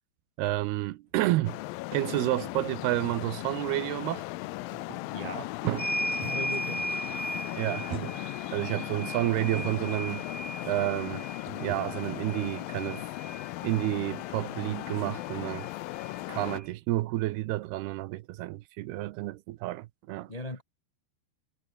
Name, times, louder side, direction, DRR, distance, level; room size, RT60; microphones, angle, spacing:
voice 1, 0.4-1.6 1.9-4.3 4.9-5.0 5.6-5.9 7.6-10.2 10.6-11.3 11.6-13.0 13.6-15.7 16.3-20.3, right 17 dB, 75° right, 2.7 m, -30 dB
sound 1, 1.1-6.8 7.0-7.4 7.9-10.4 11.5-13.4 13.7-13.8, right 7 dB, 60° right, 5.1 m, -46 dB
Traffic noise roadway noise, 1.5-16.6, left 19 dB, 85° left, 2.0 m, -37 dB
voice 2, 5.1-5.5 6.2-7.0 20.3-20.6, left 1 dB, 70° left, 0.3 m, -38 dB
sound 2, 5.8-13.9 15.2-15.3 15.5-16.6, right 1 dB, 5° right, 1.8 m, -37 dB
omnidirectional pair, 4.9 m